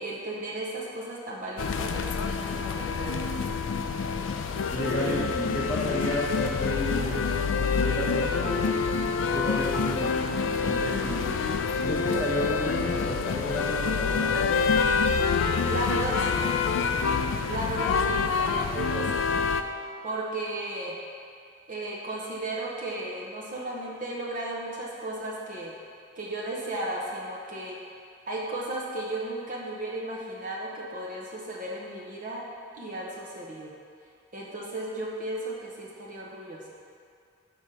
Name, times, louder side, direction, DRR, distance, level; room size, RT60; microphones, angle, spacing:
voice 1, 0.0-3.2 15.7-16.4 17.5-19.2 20.0-21.0 21.7-25.7 26.2-27.8 28.3-32.4 32.8-33.7 34.3-36.6, right 1 dB, 40° right, -4 dB, 0.7 m, -34 dB
sound 1, 1.6-19.6, left 5 dB, 65° left, 0.3 m, -27 dB
voice 2, 4.7-7.2 7.6-8.8 9.2-10.1 10.4-11.2 11.8-14.6, equal, 10° left, -7 dB, 1.0 m, -32 dB
6.1 x 3.7 x 5.4 m, 2.3 s
head